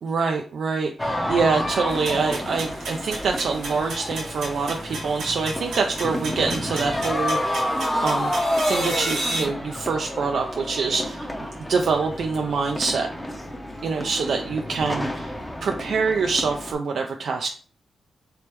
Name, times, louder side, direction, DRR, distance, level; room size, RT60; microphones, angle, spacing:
voice 1, 0.0-8.3 8.6-11.3 11.7-13.1 13.8-15.3 15.6-17.5, right 4 dB, 70° right, 3 dB, 0.4 m, -25 dB
sound 1, 1.0-16.7, left 1 dB, 10° left, 0.7 m, -29 dB
sound 2, 1.9-9.4, right 2 dB, 90° right, 1.6 m, -33 dB
3.4 x 3.2 x 3.0 m, 0.41 s
cardioid pair, 90°, 0 cm